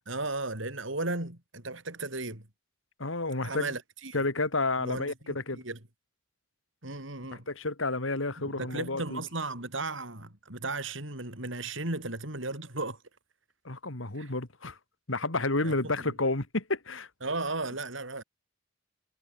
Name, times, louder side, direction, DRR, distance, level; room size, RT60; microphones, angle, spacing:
voice 1, 0.1-2.5 3.4-4.2 4.8-5.8 6.8-7.4 8.4-13.0 14.2-14.3 15.6-15.9 17.2-18.2, right 2 dB, 75° right, 5.0 m, -35 dB
voice 2, 3.0-3.7 4.1-5.6 7.3-9.2 13.6-14.8 15.1-17.1, left 2 dB, 80° left, 2.8 m, -30 dB
head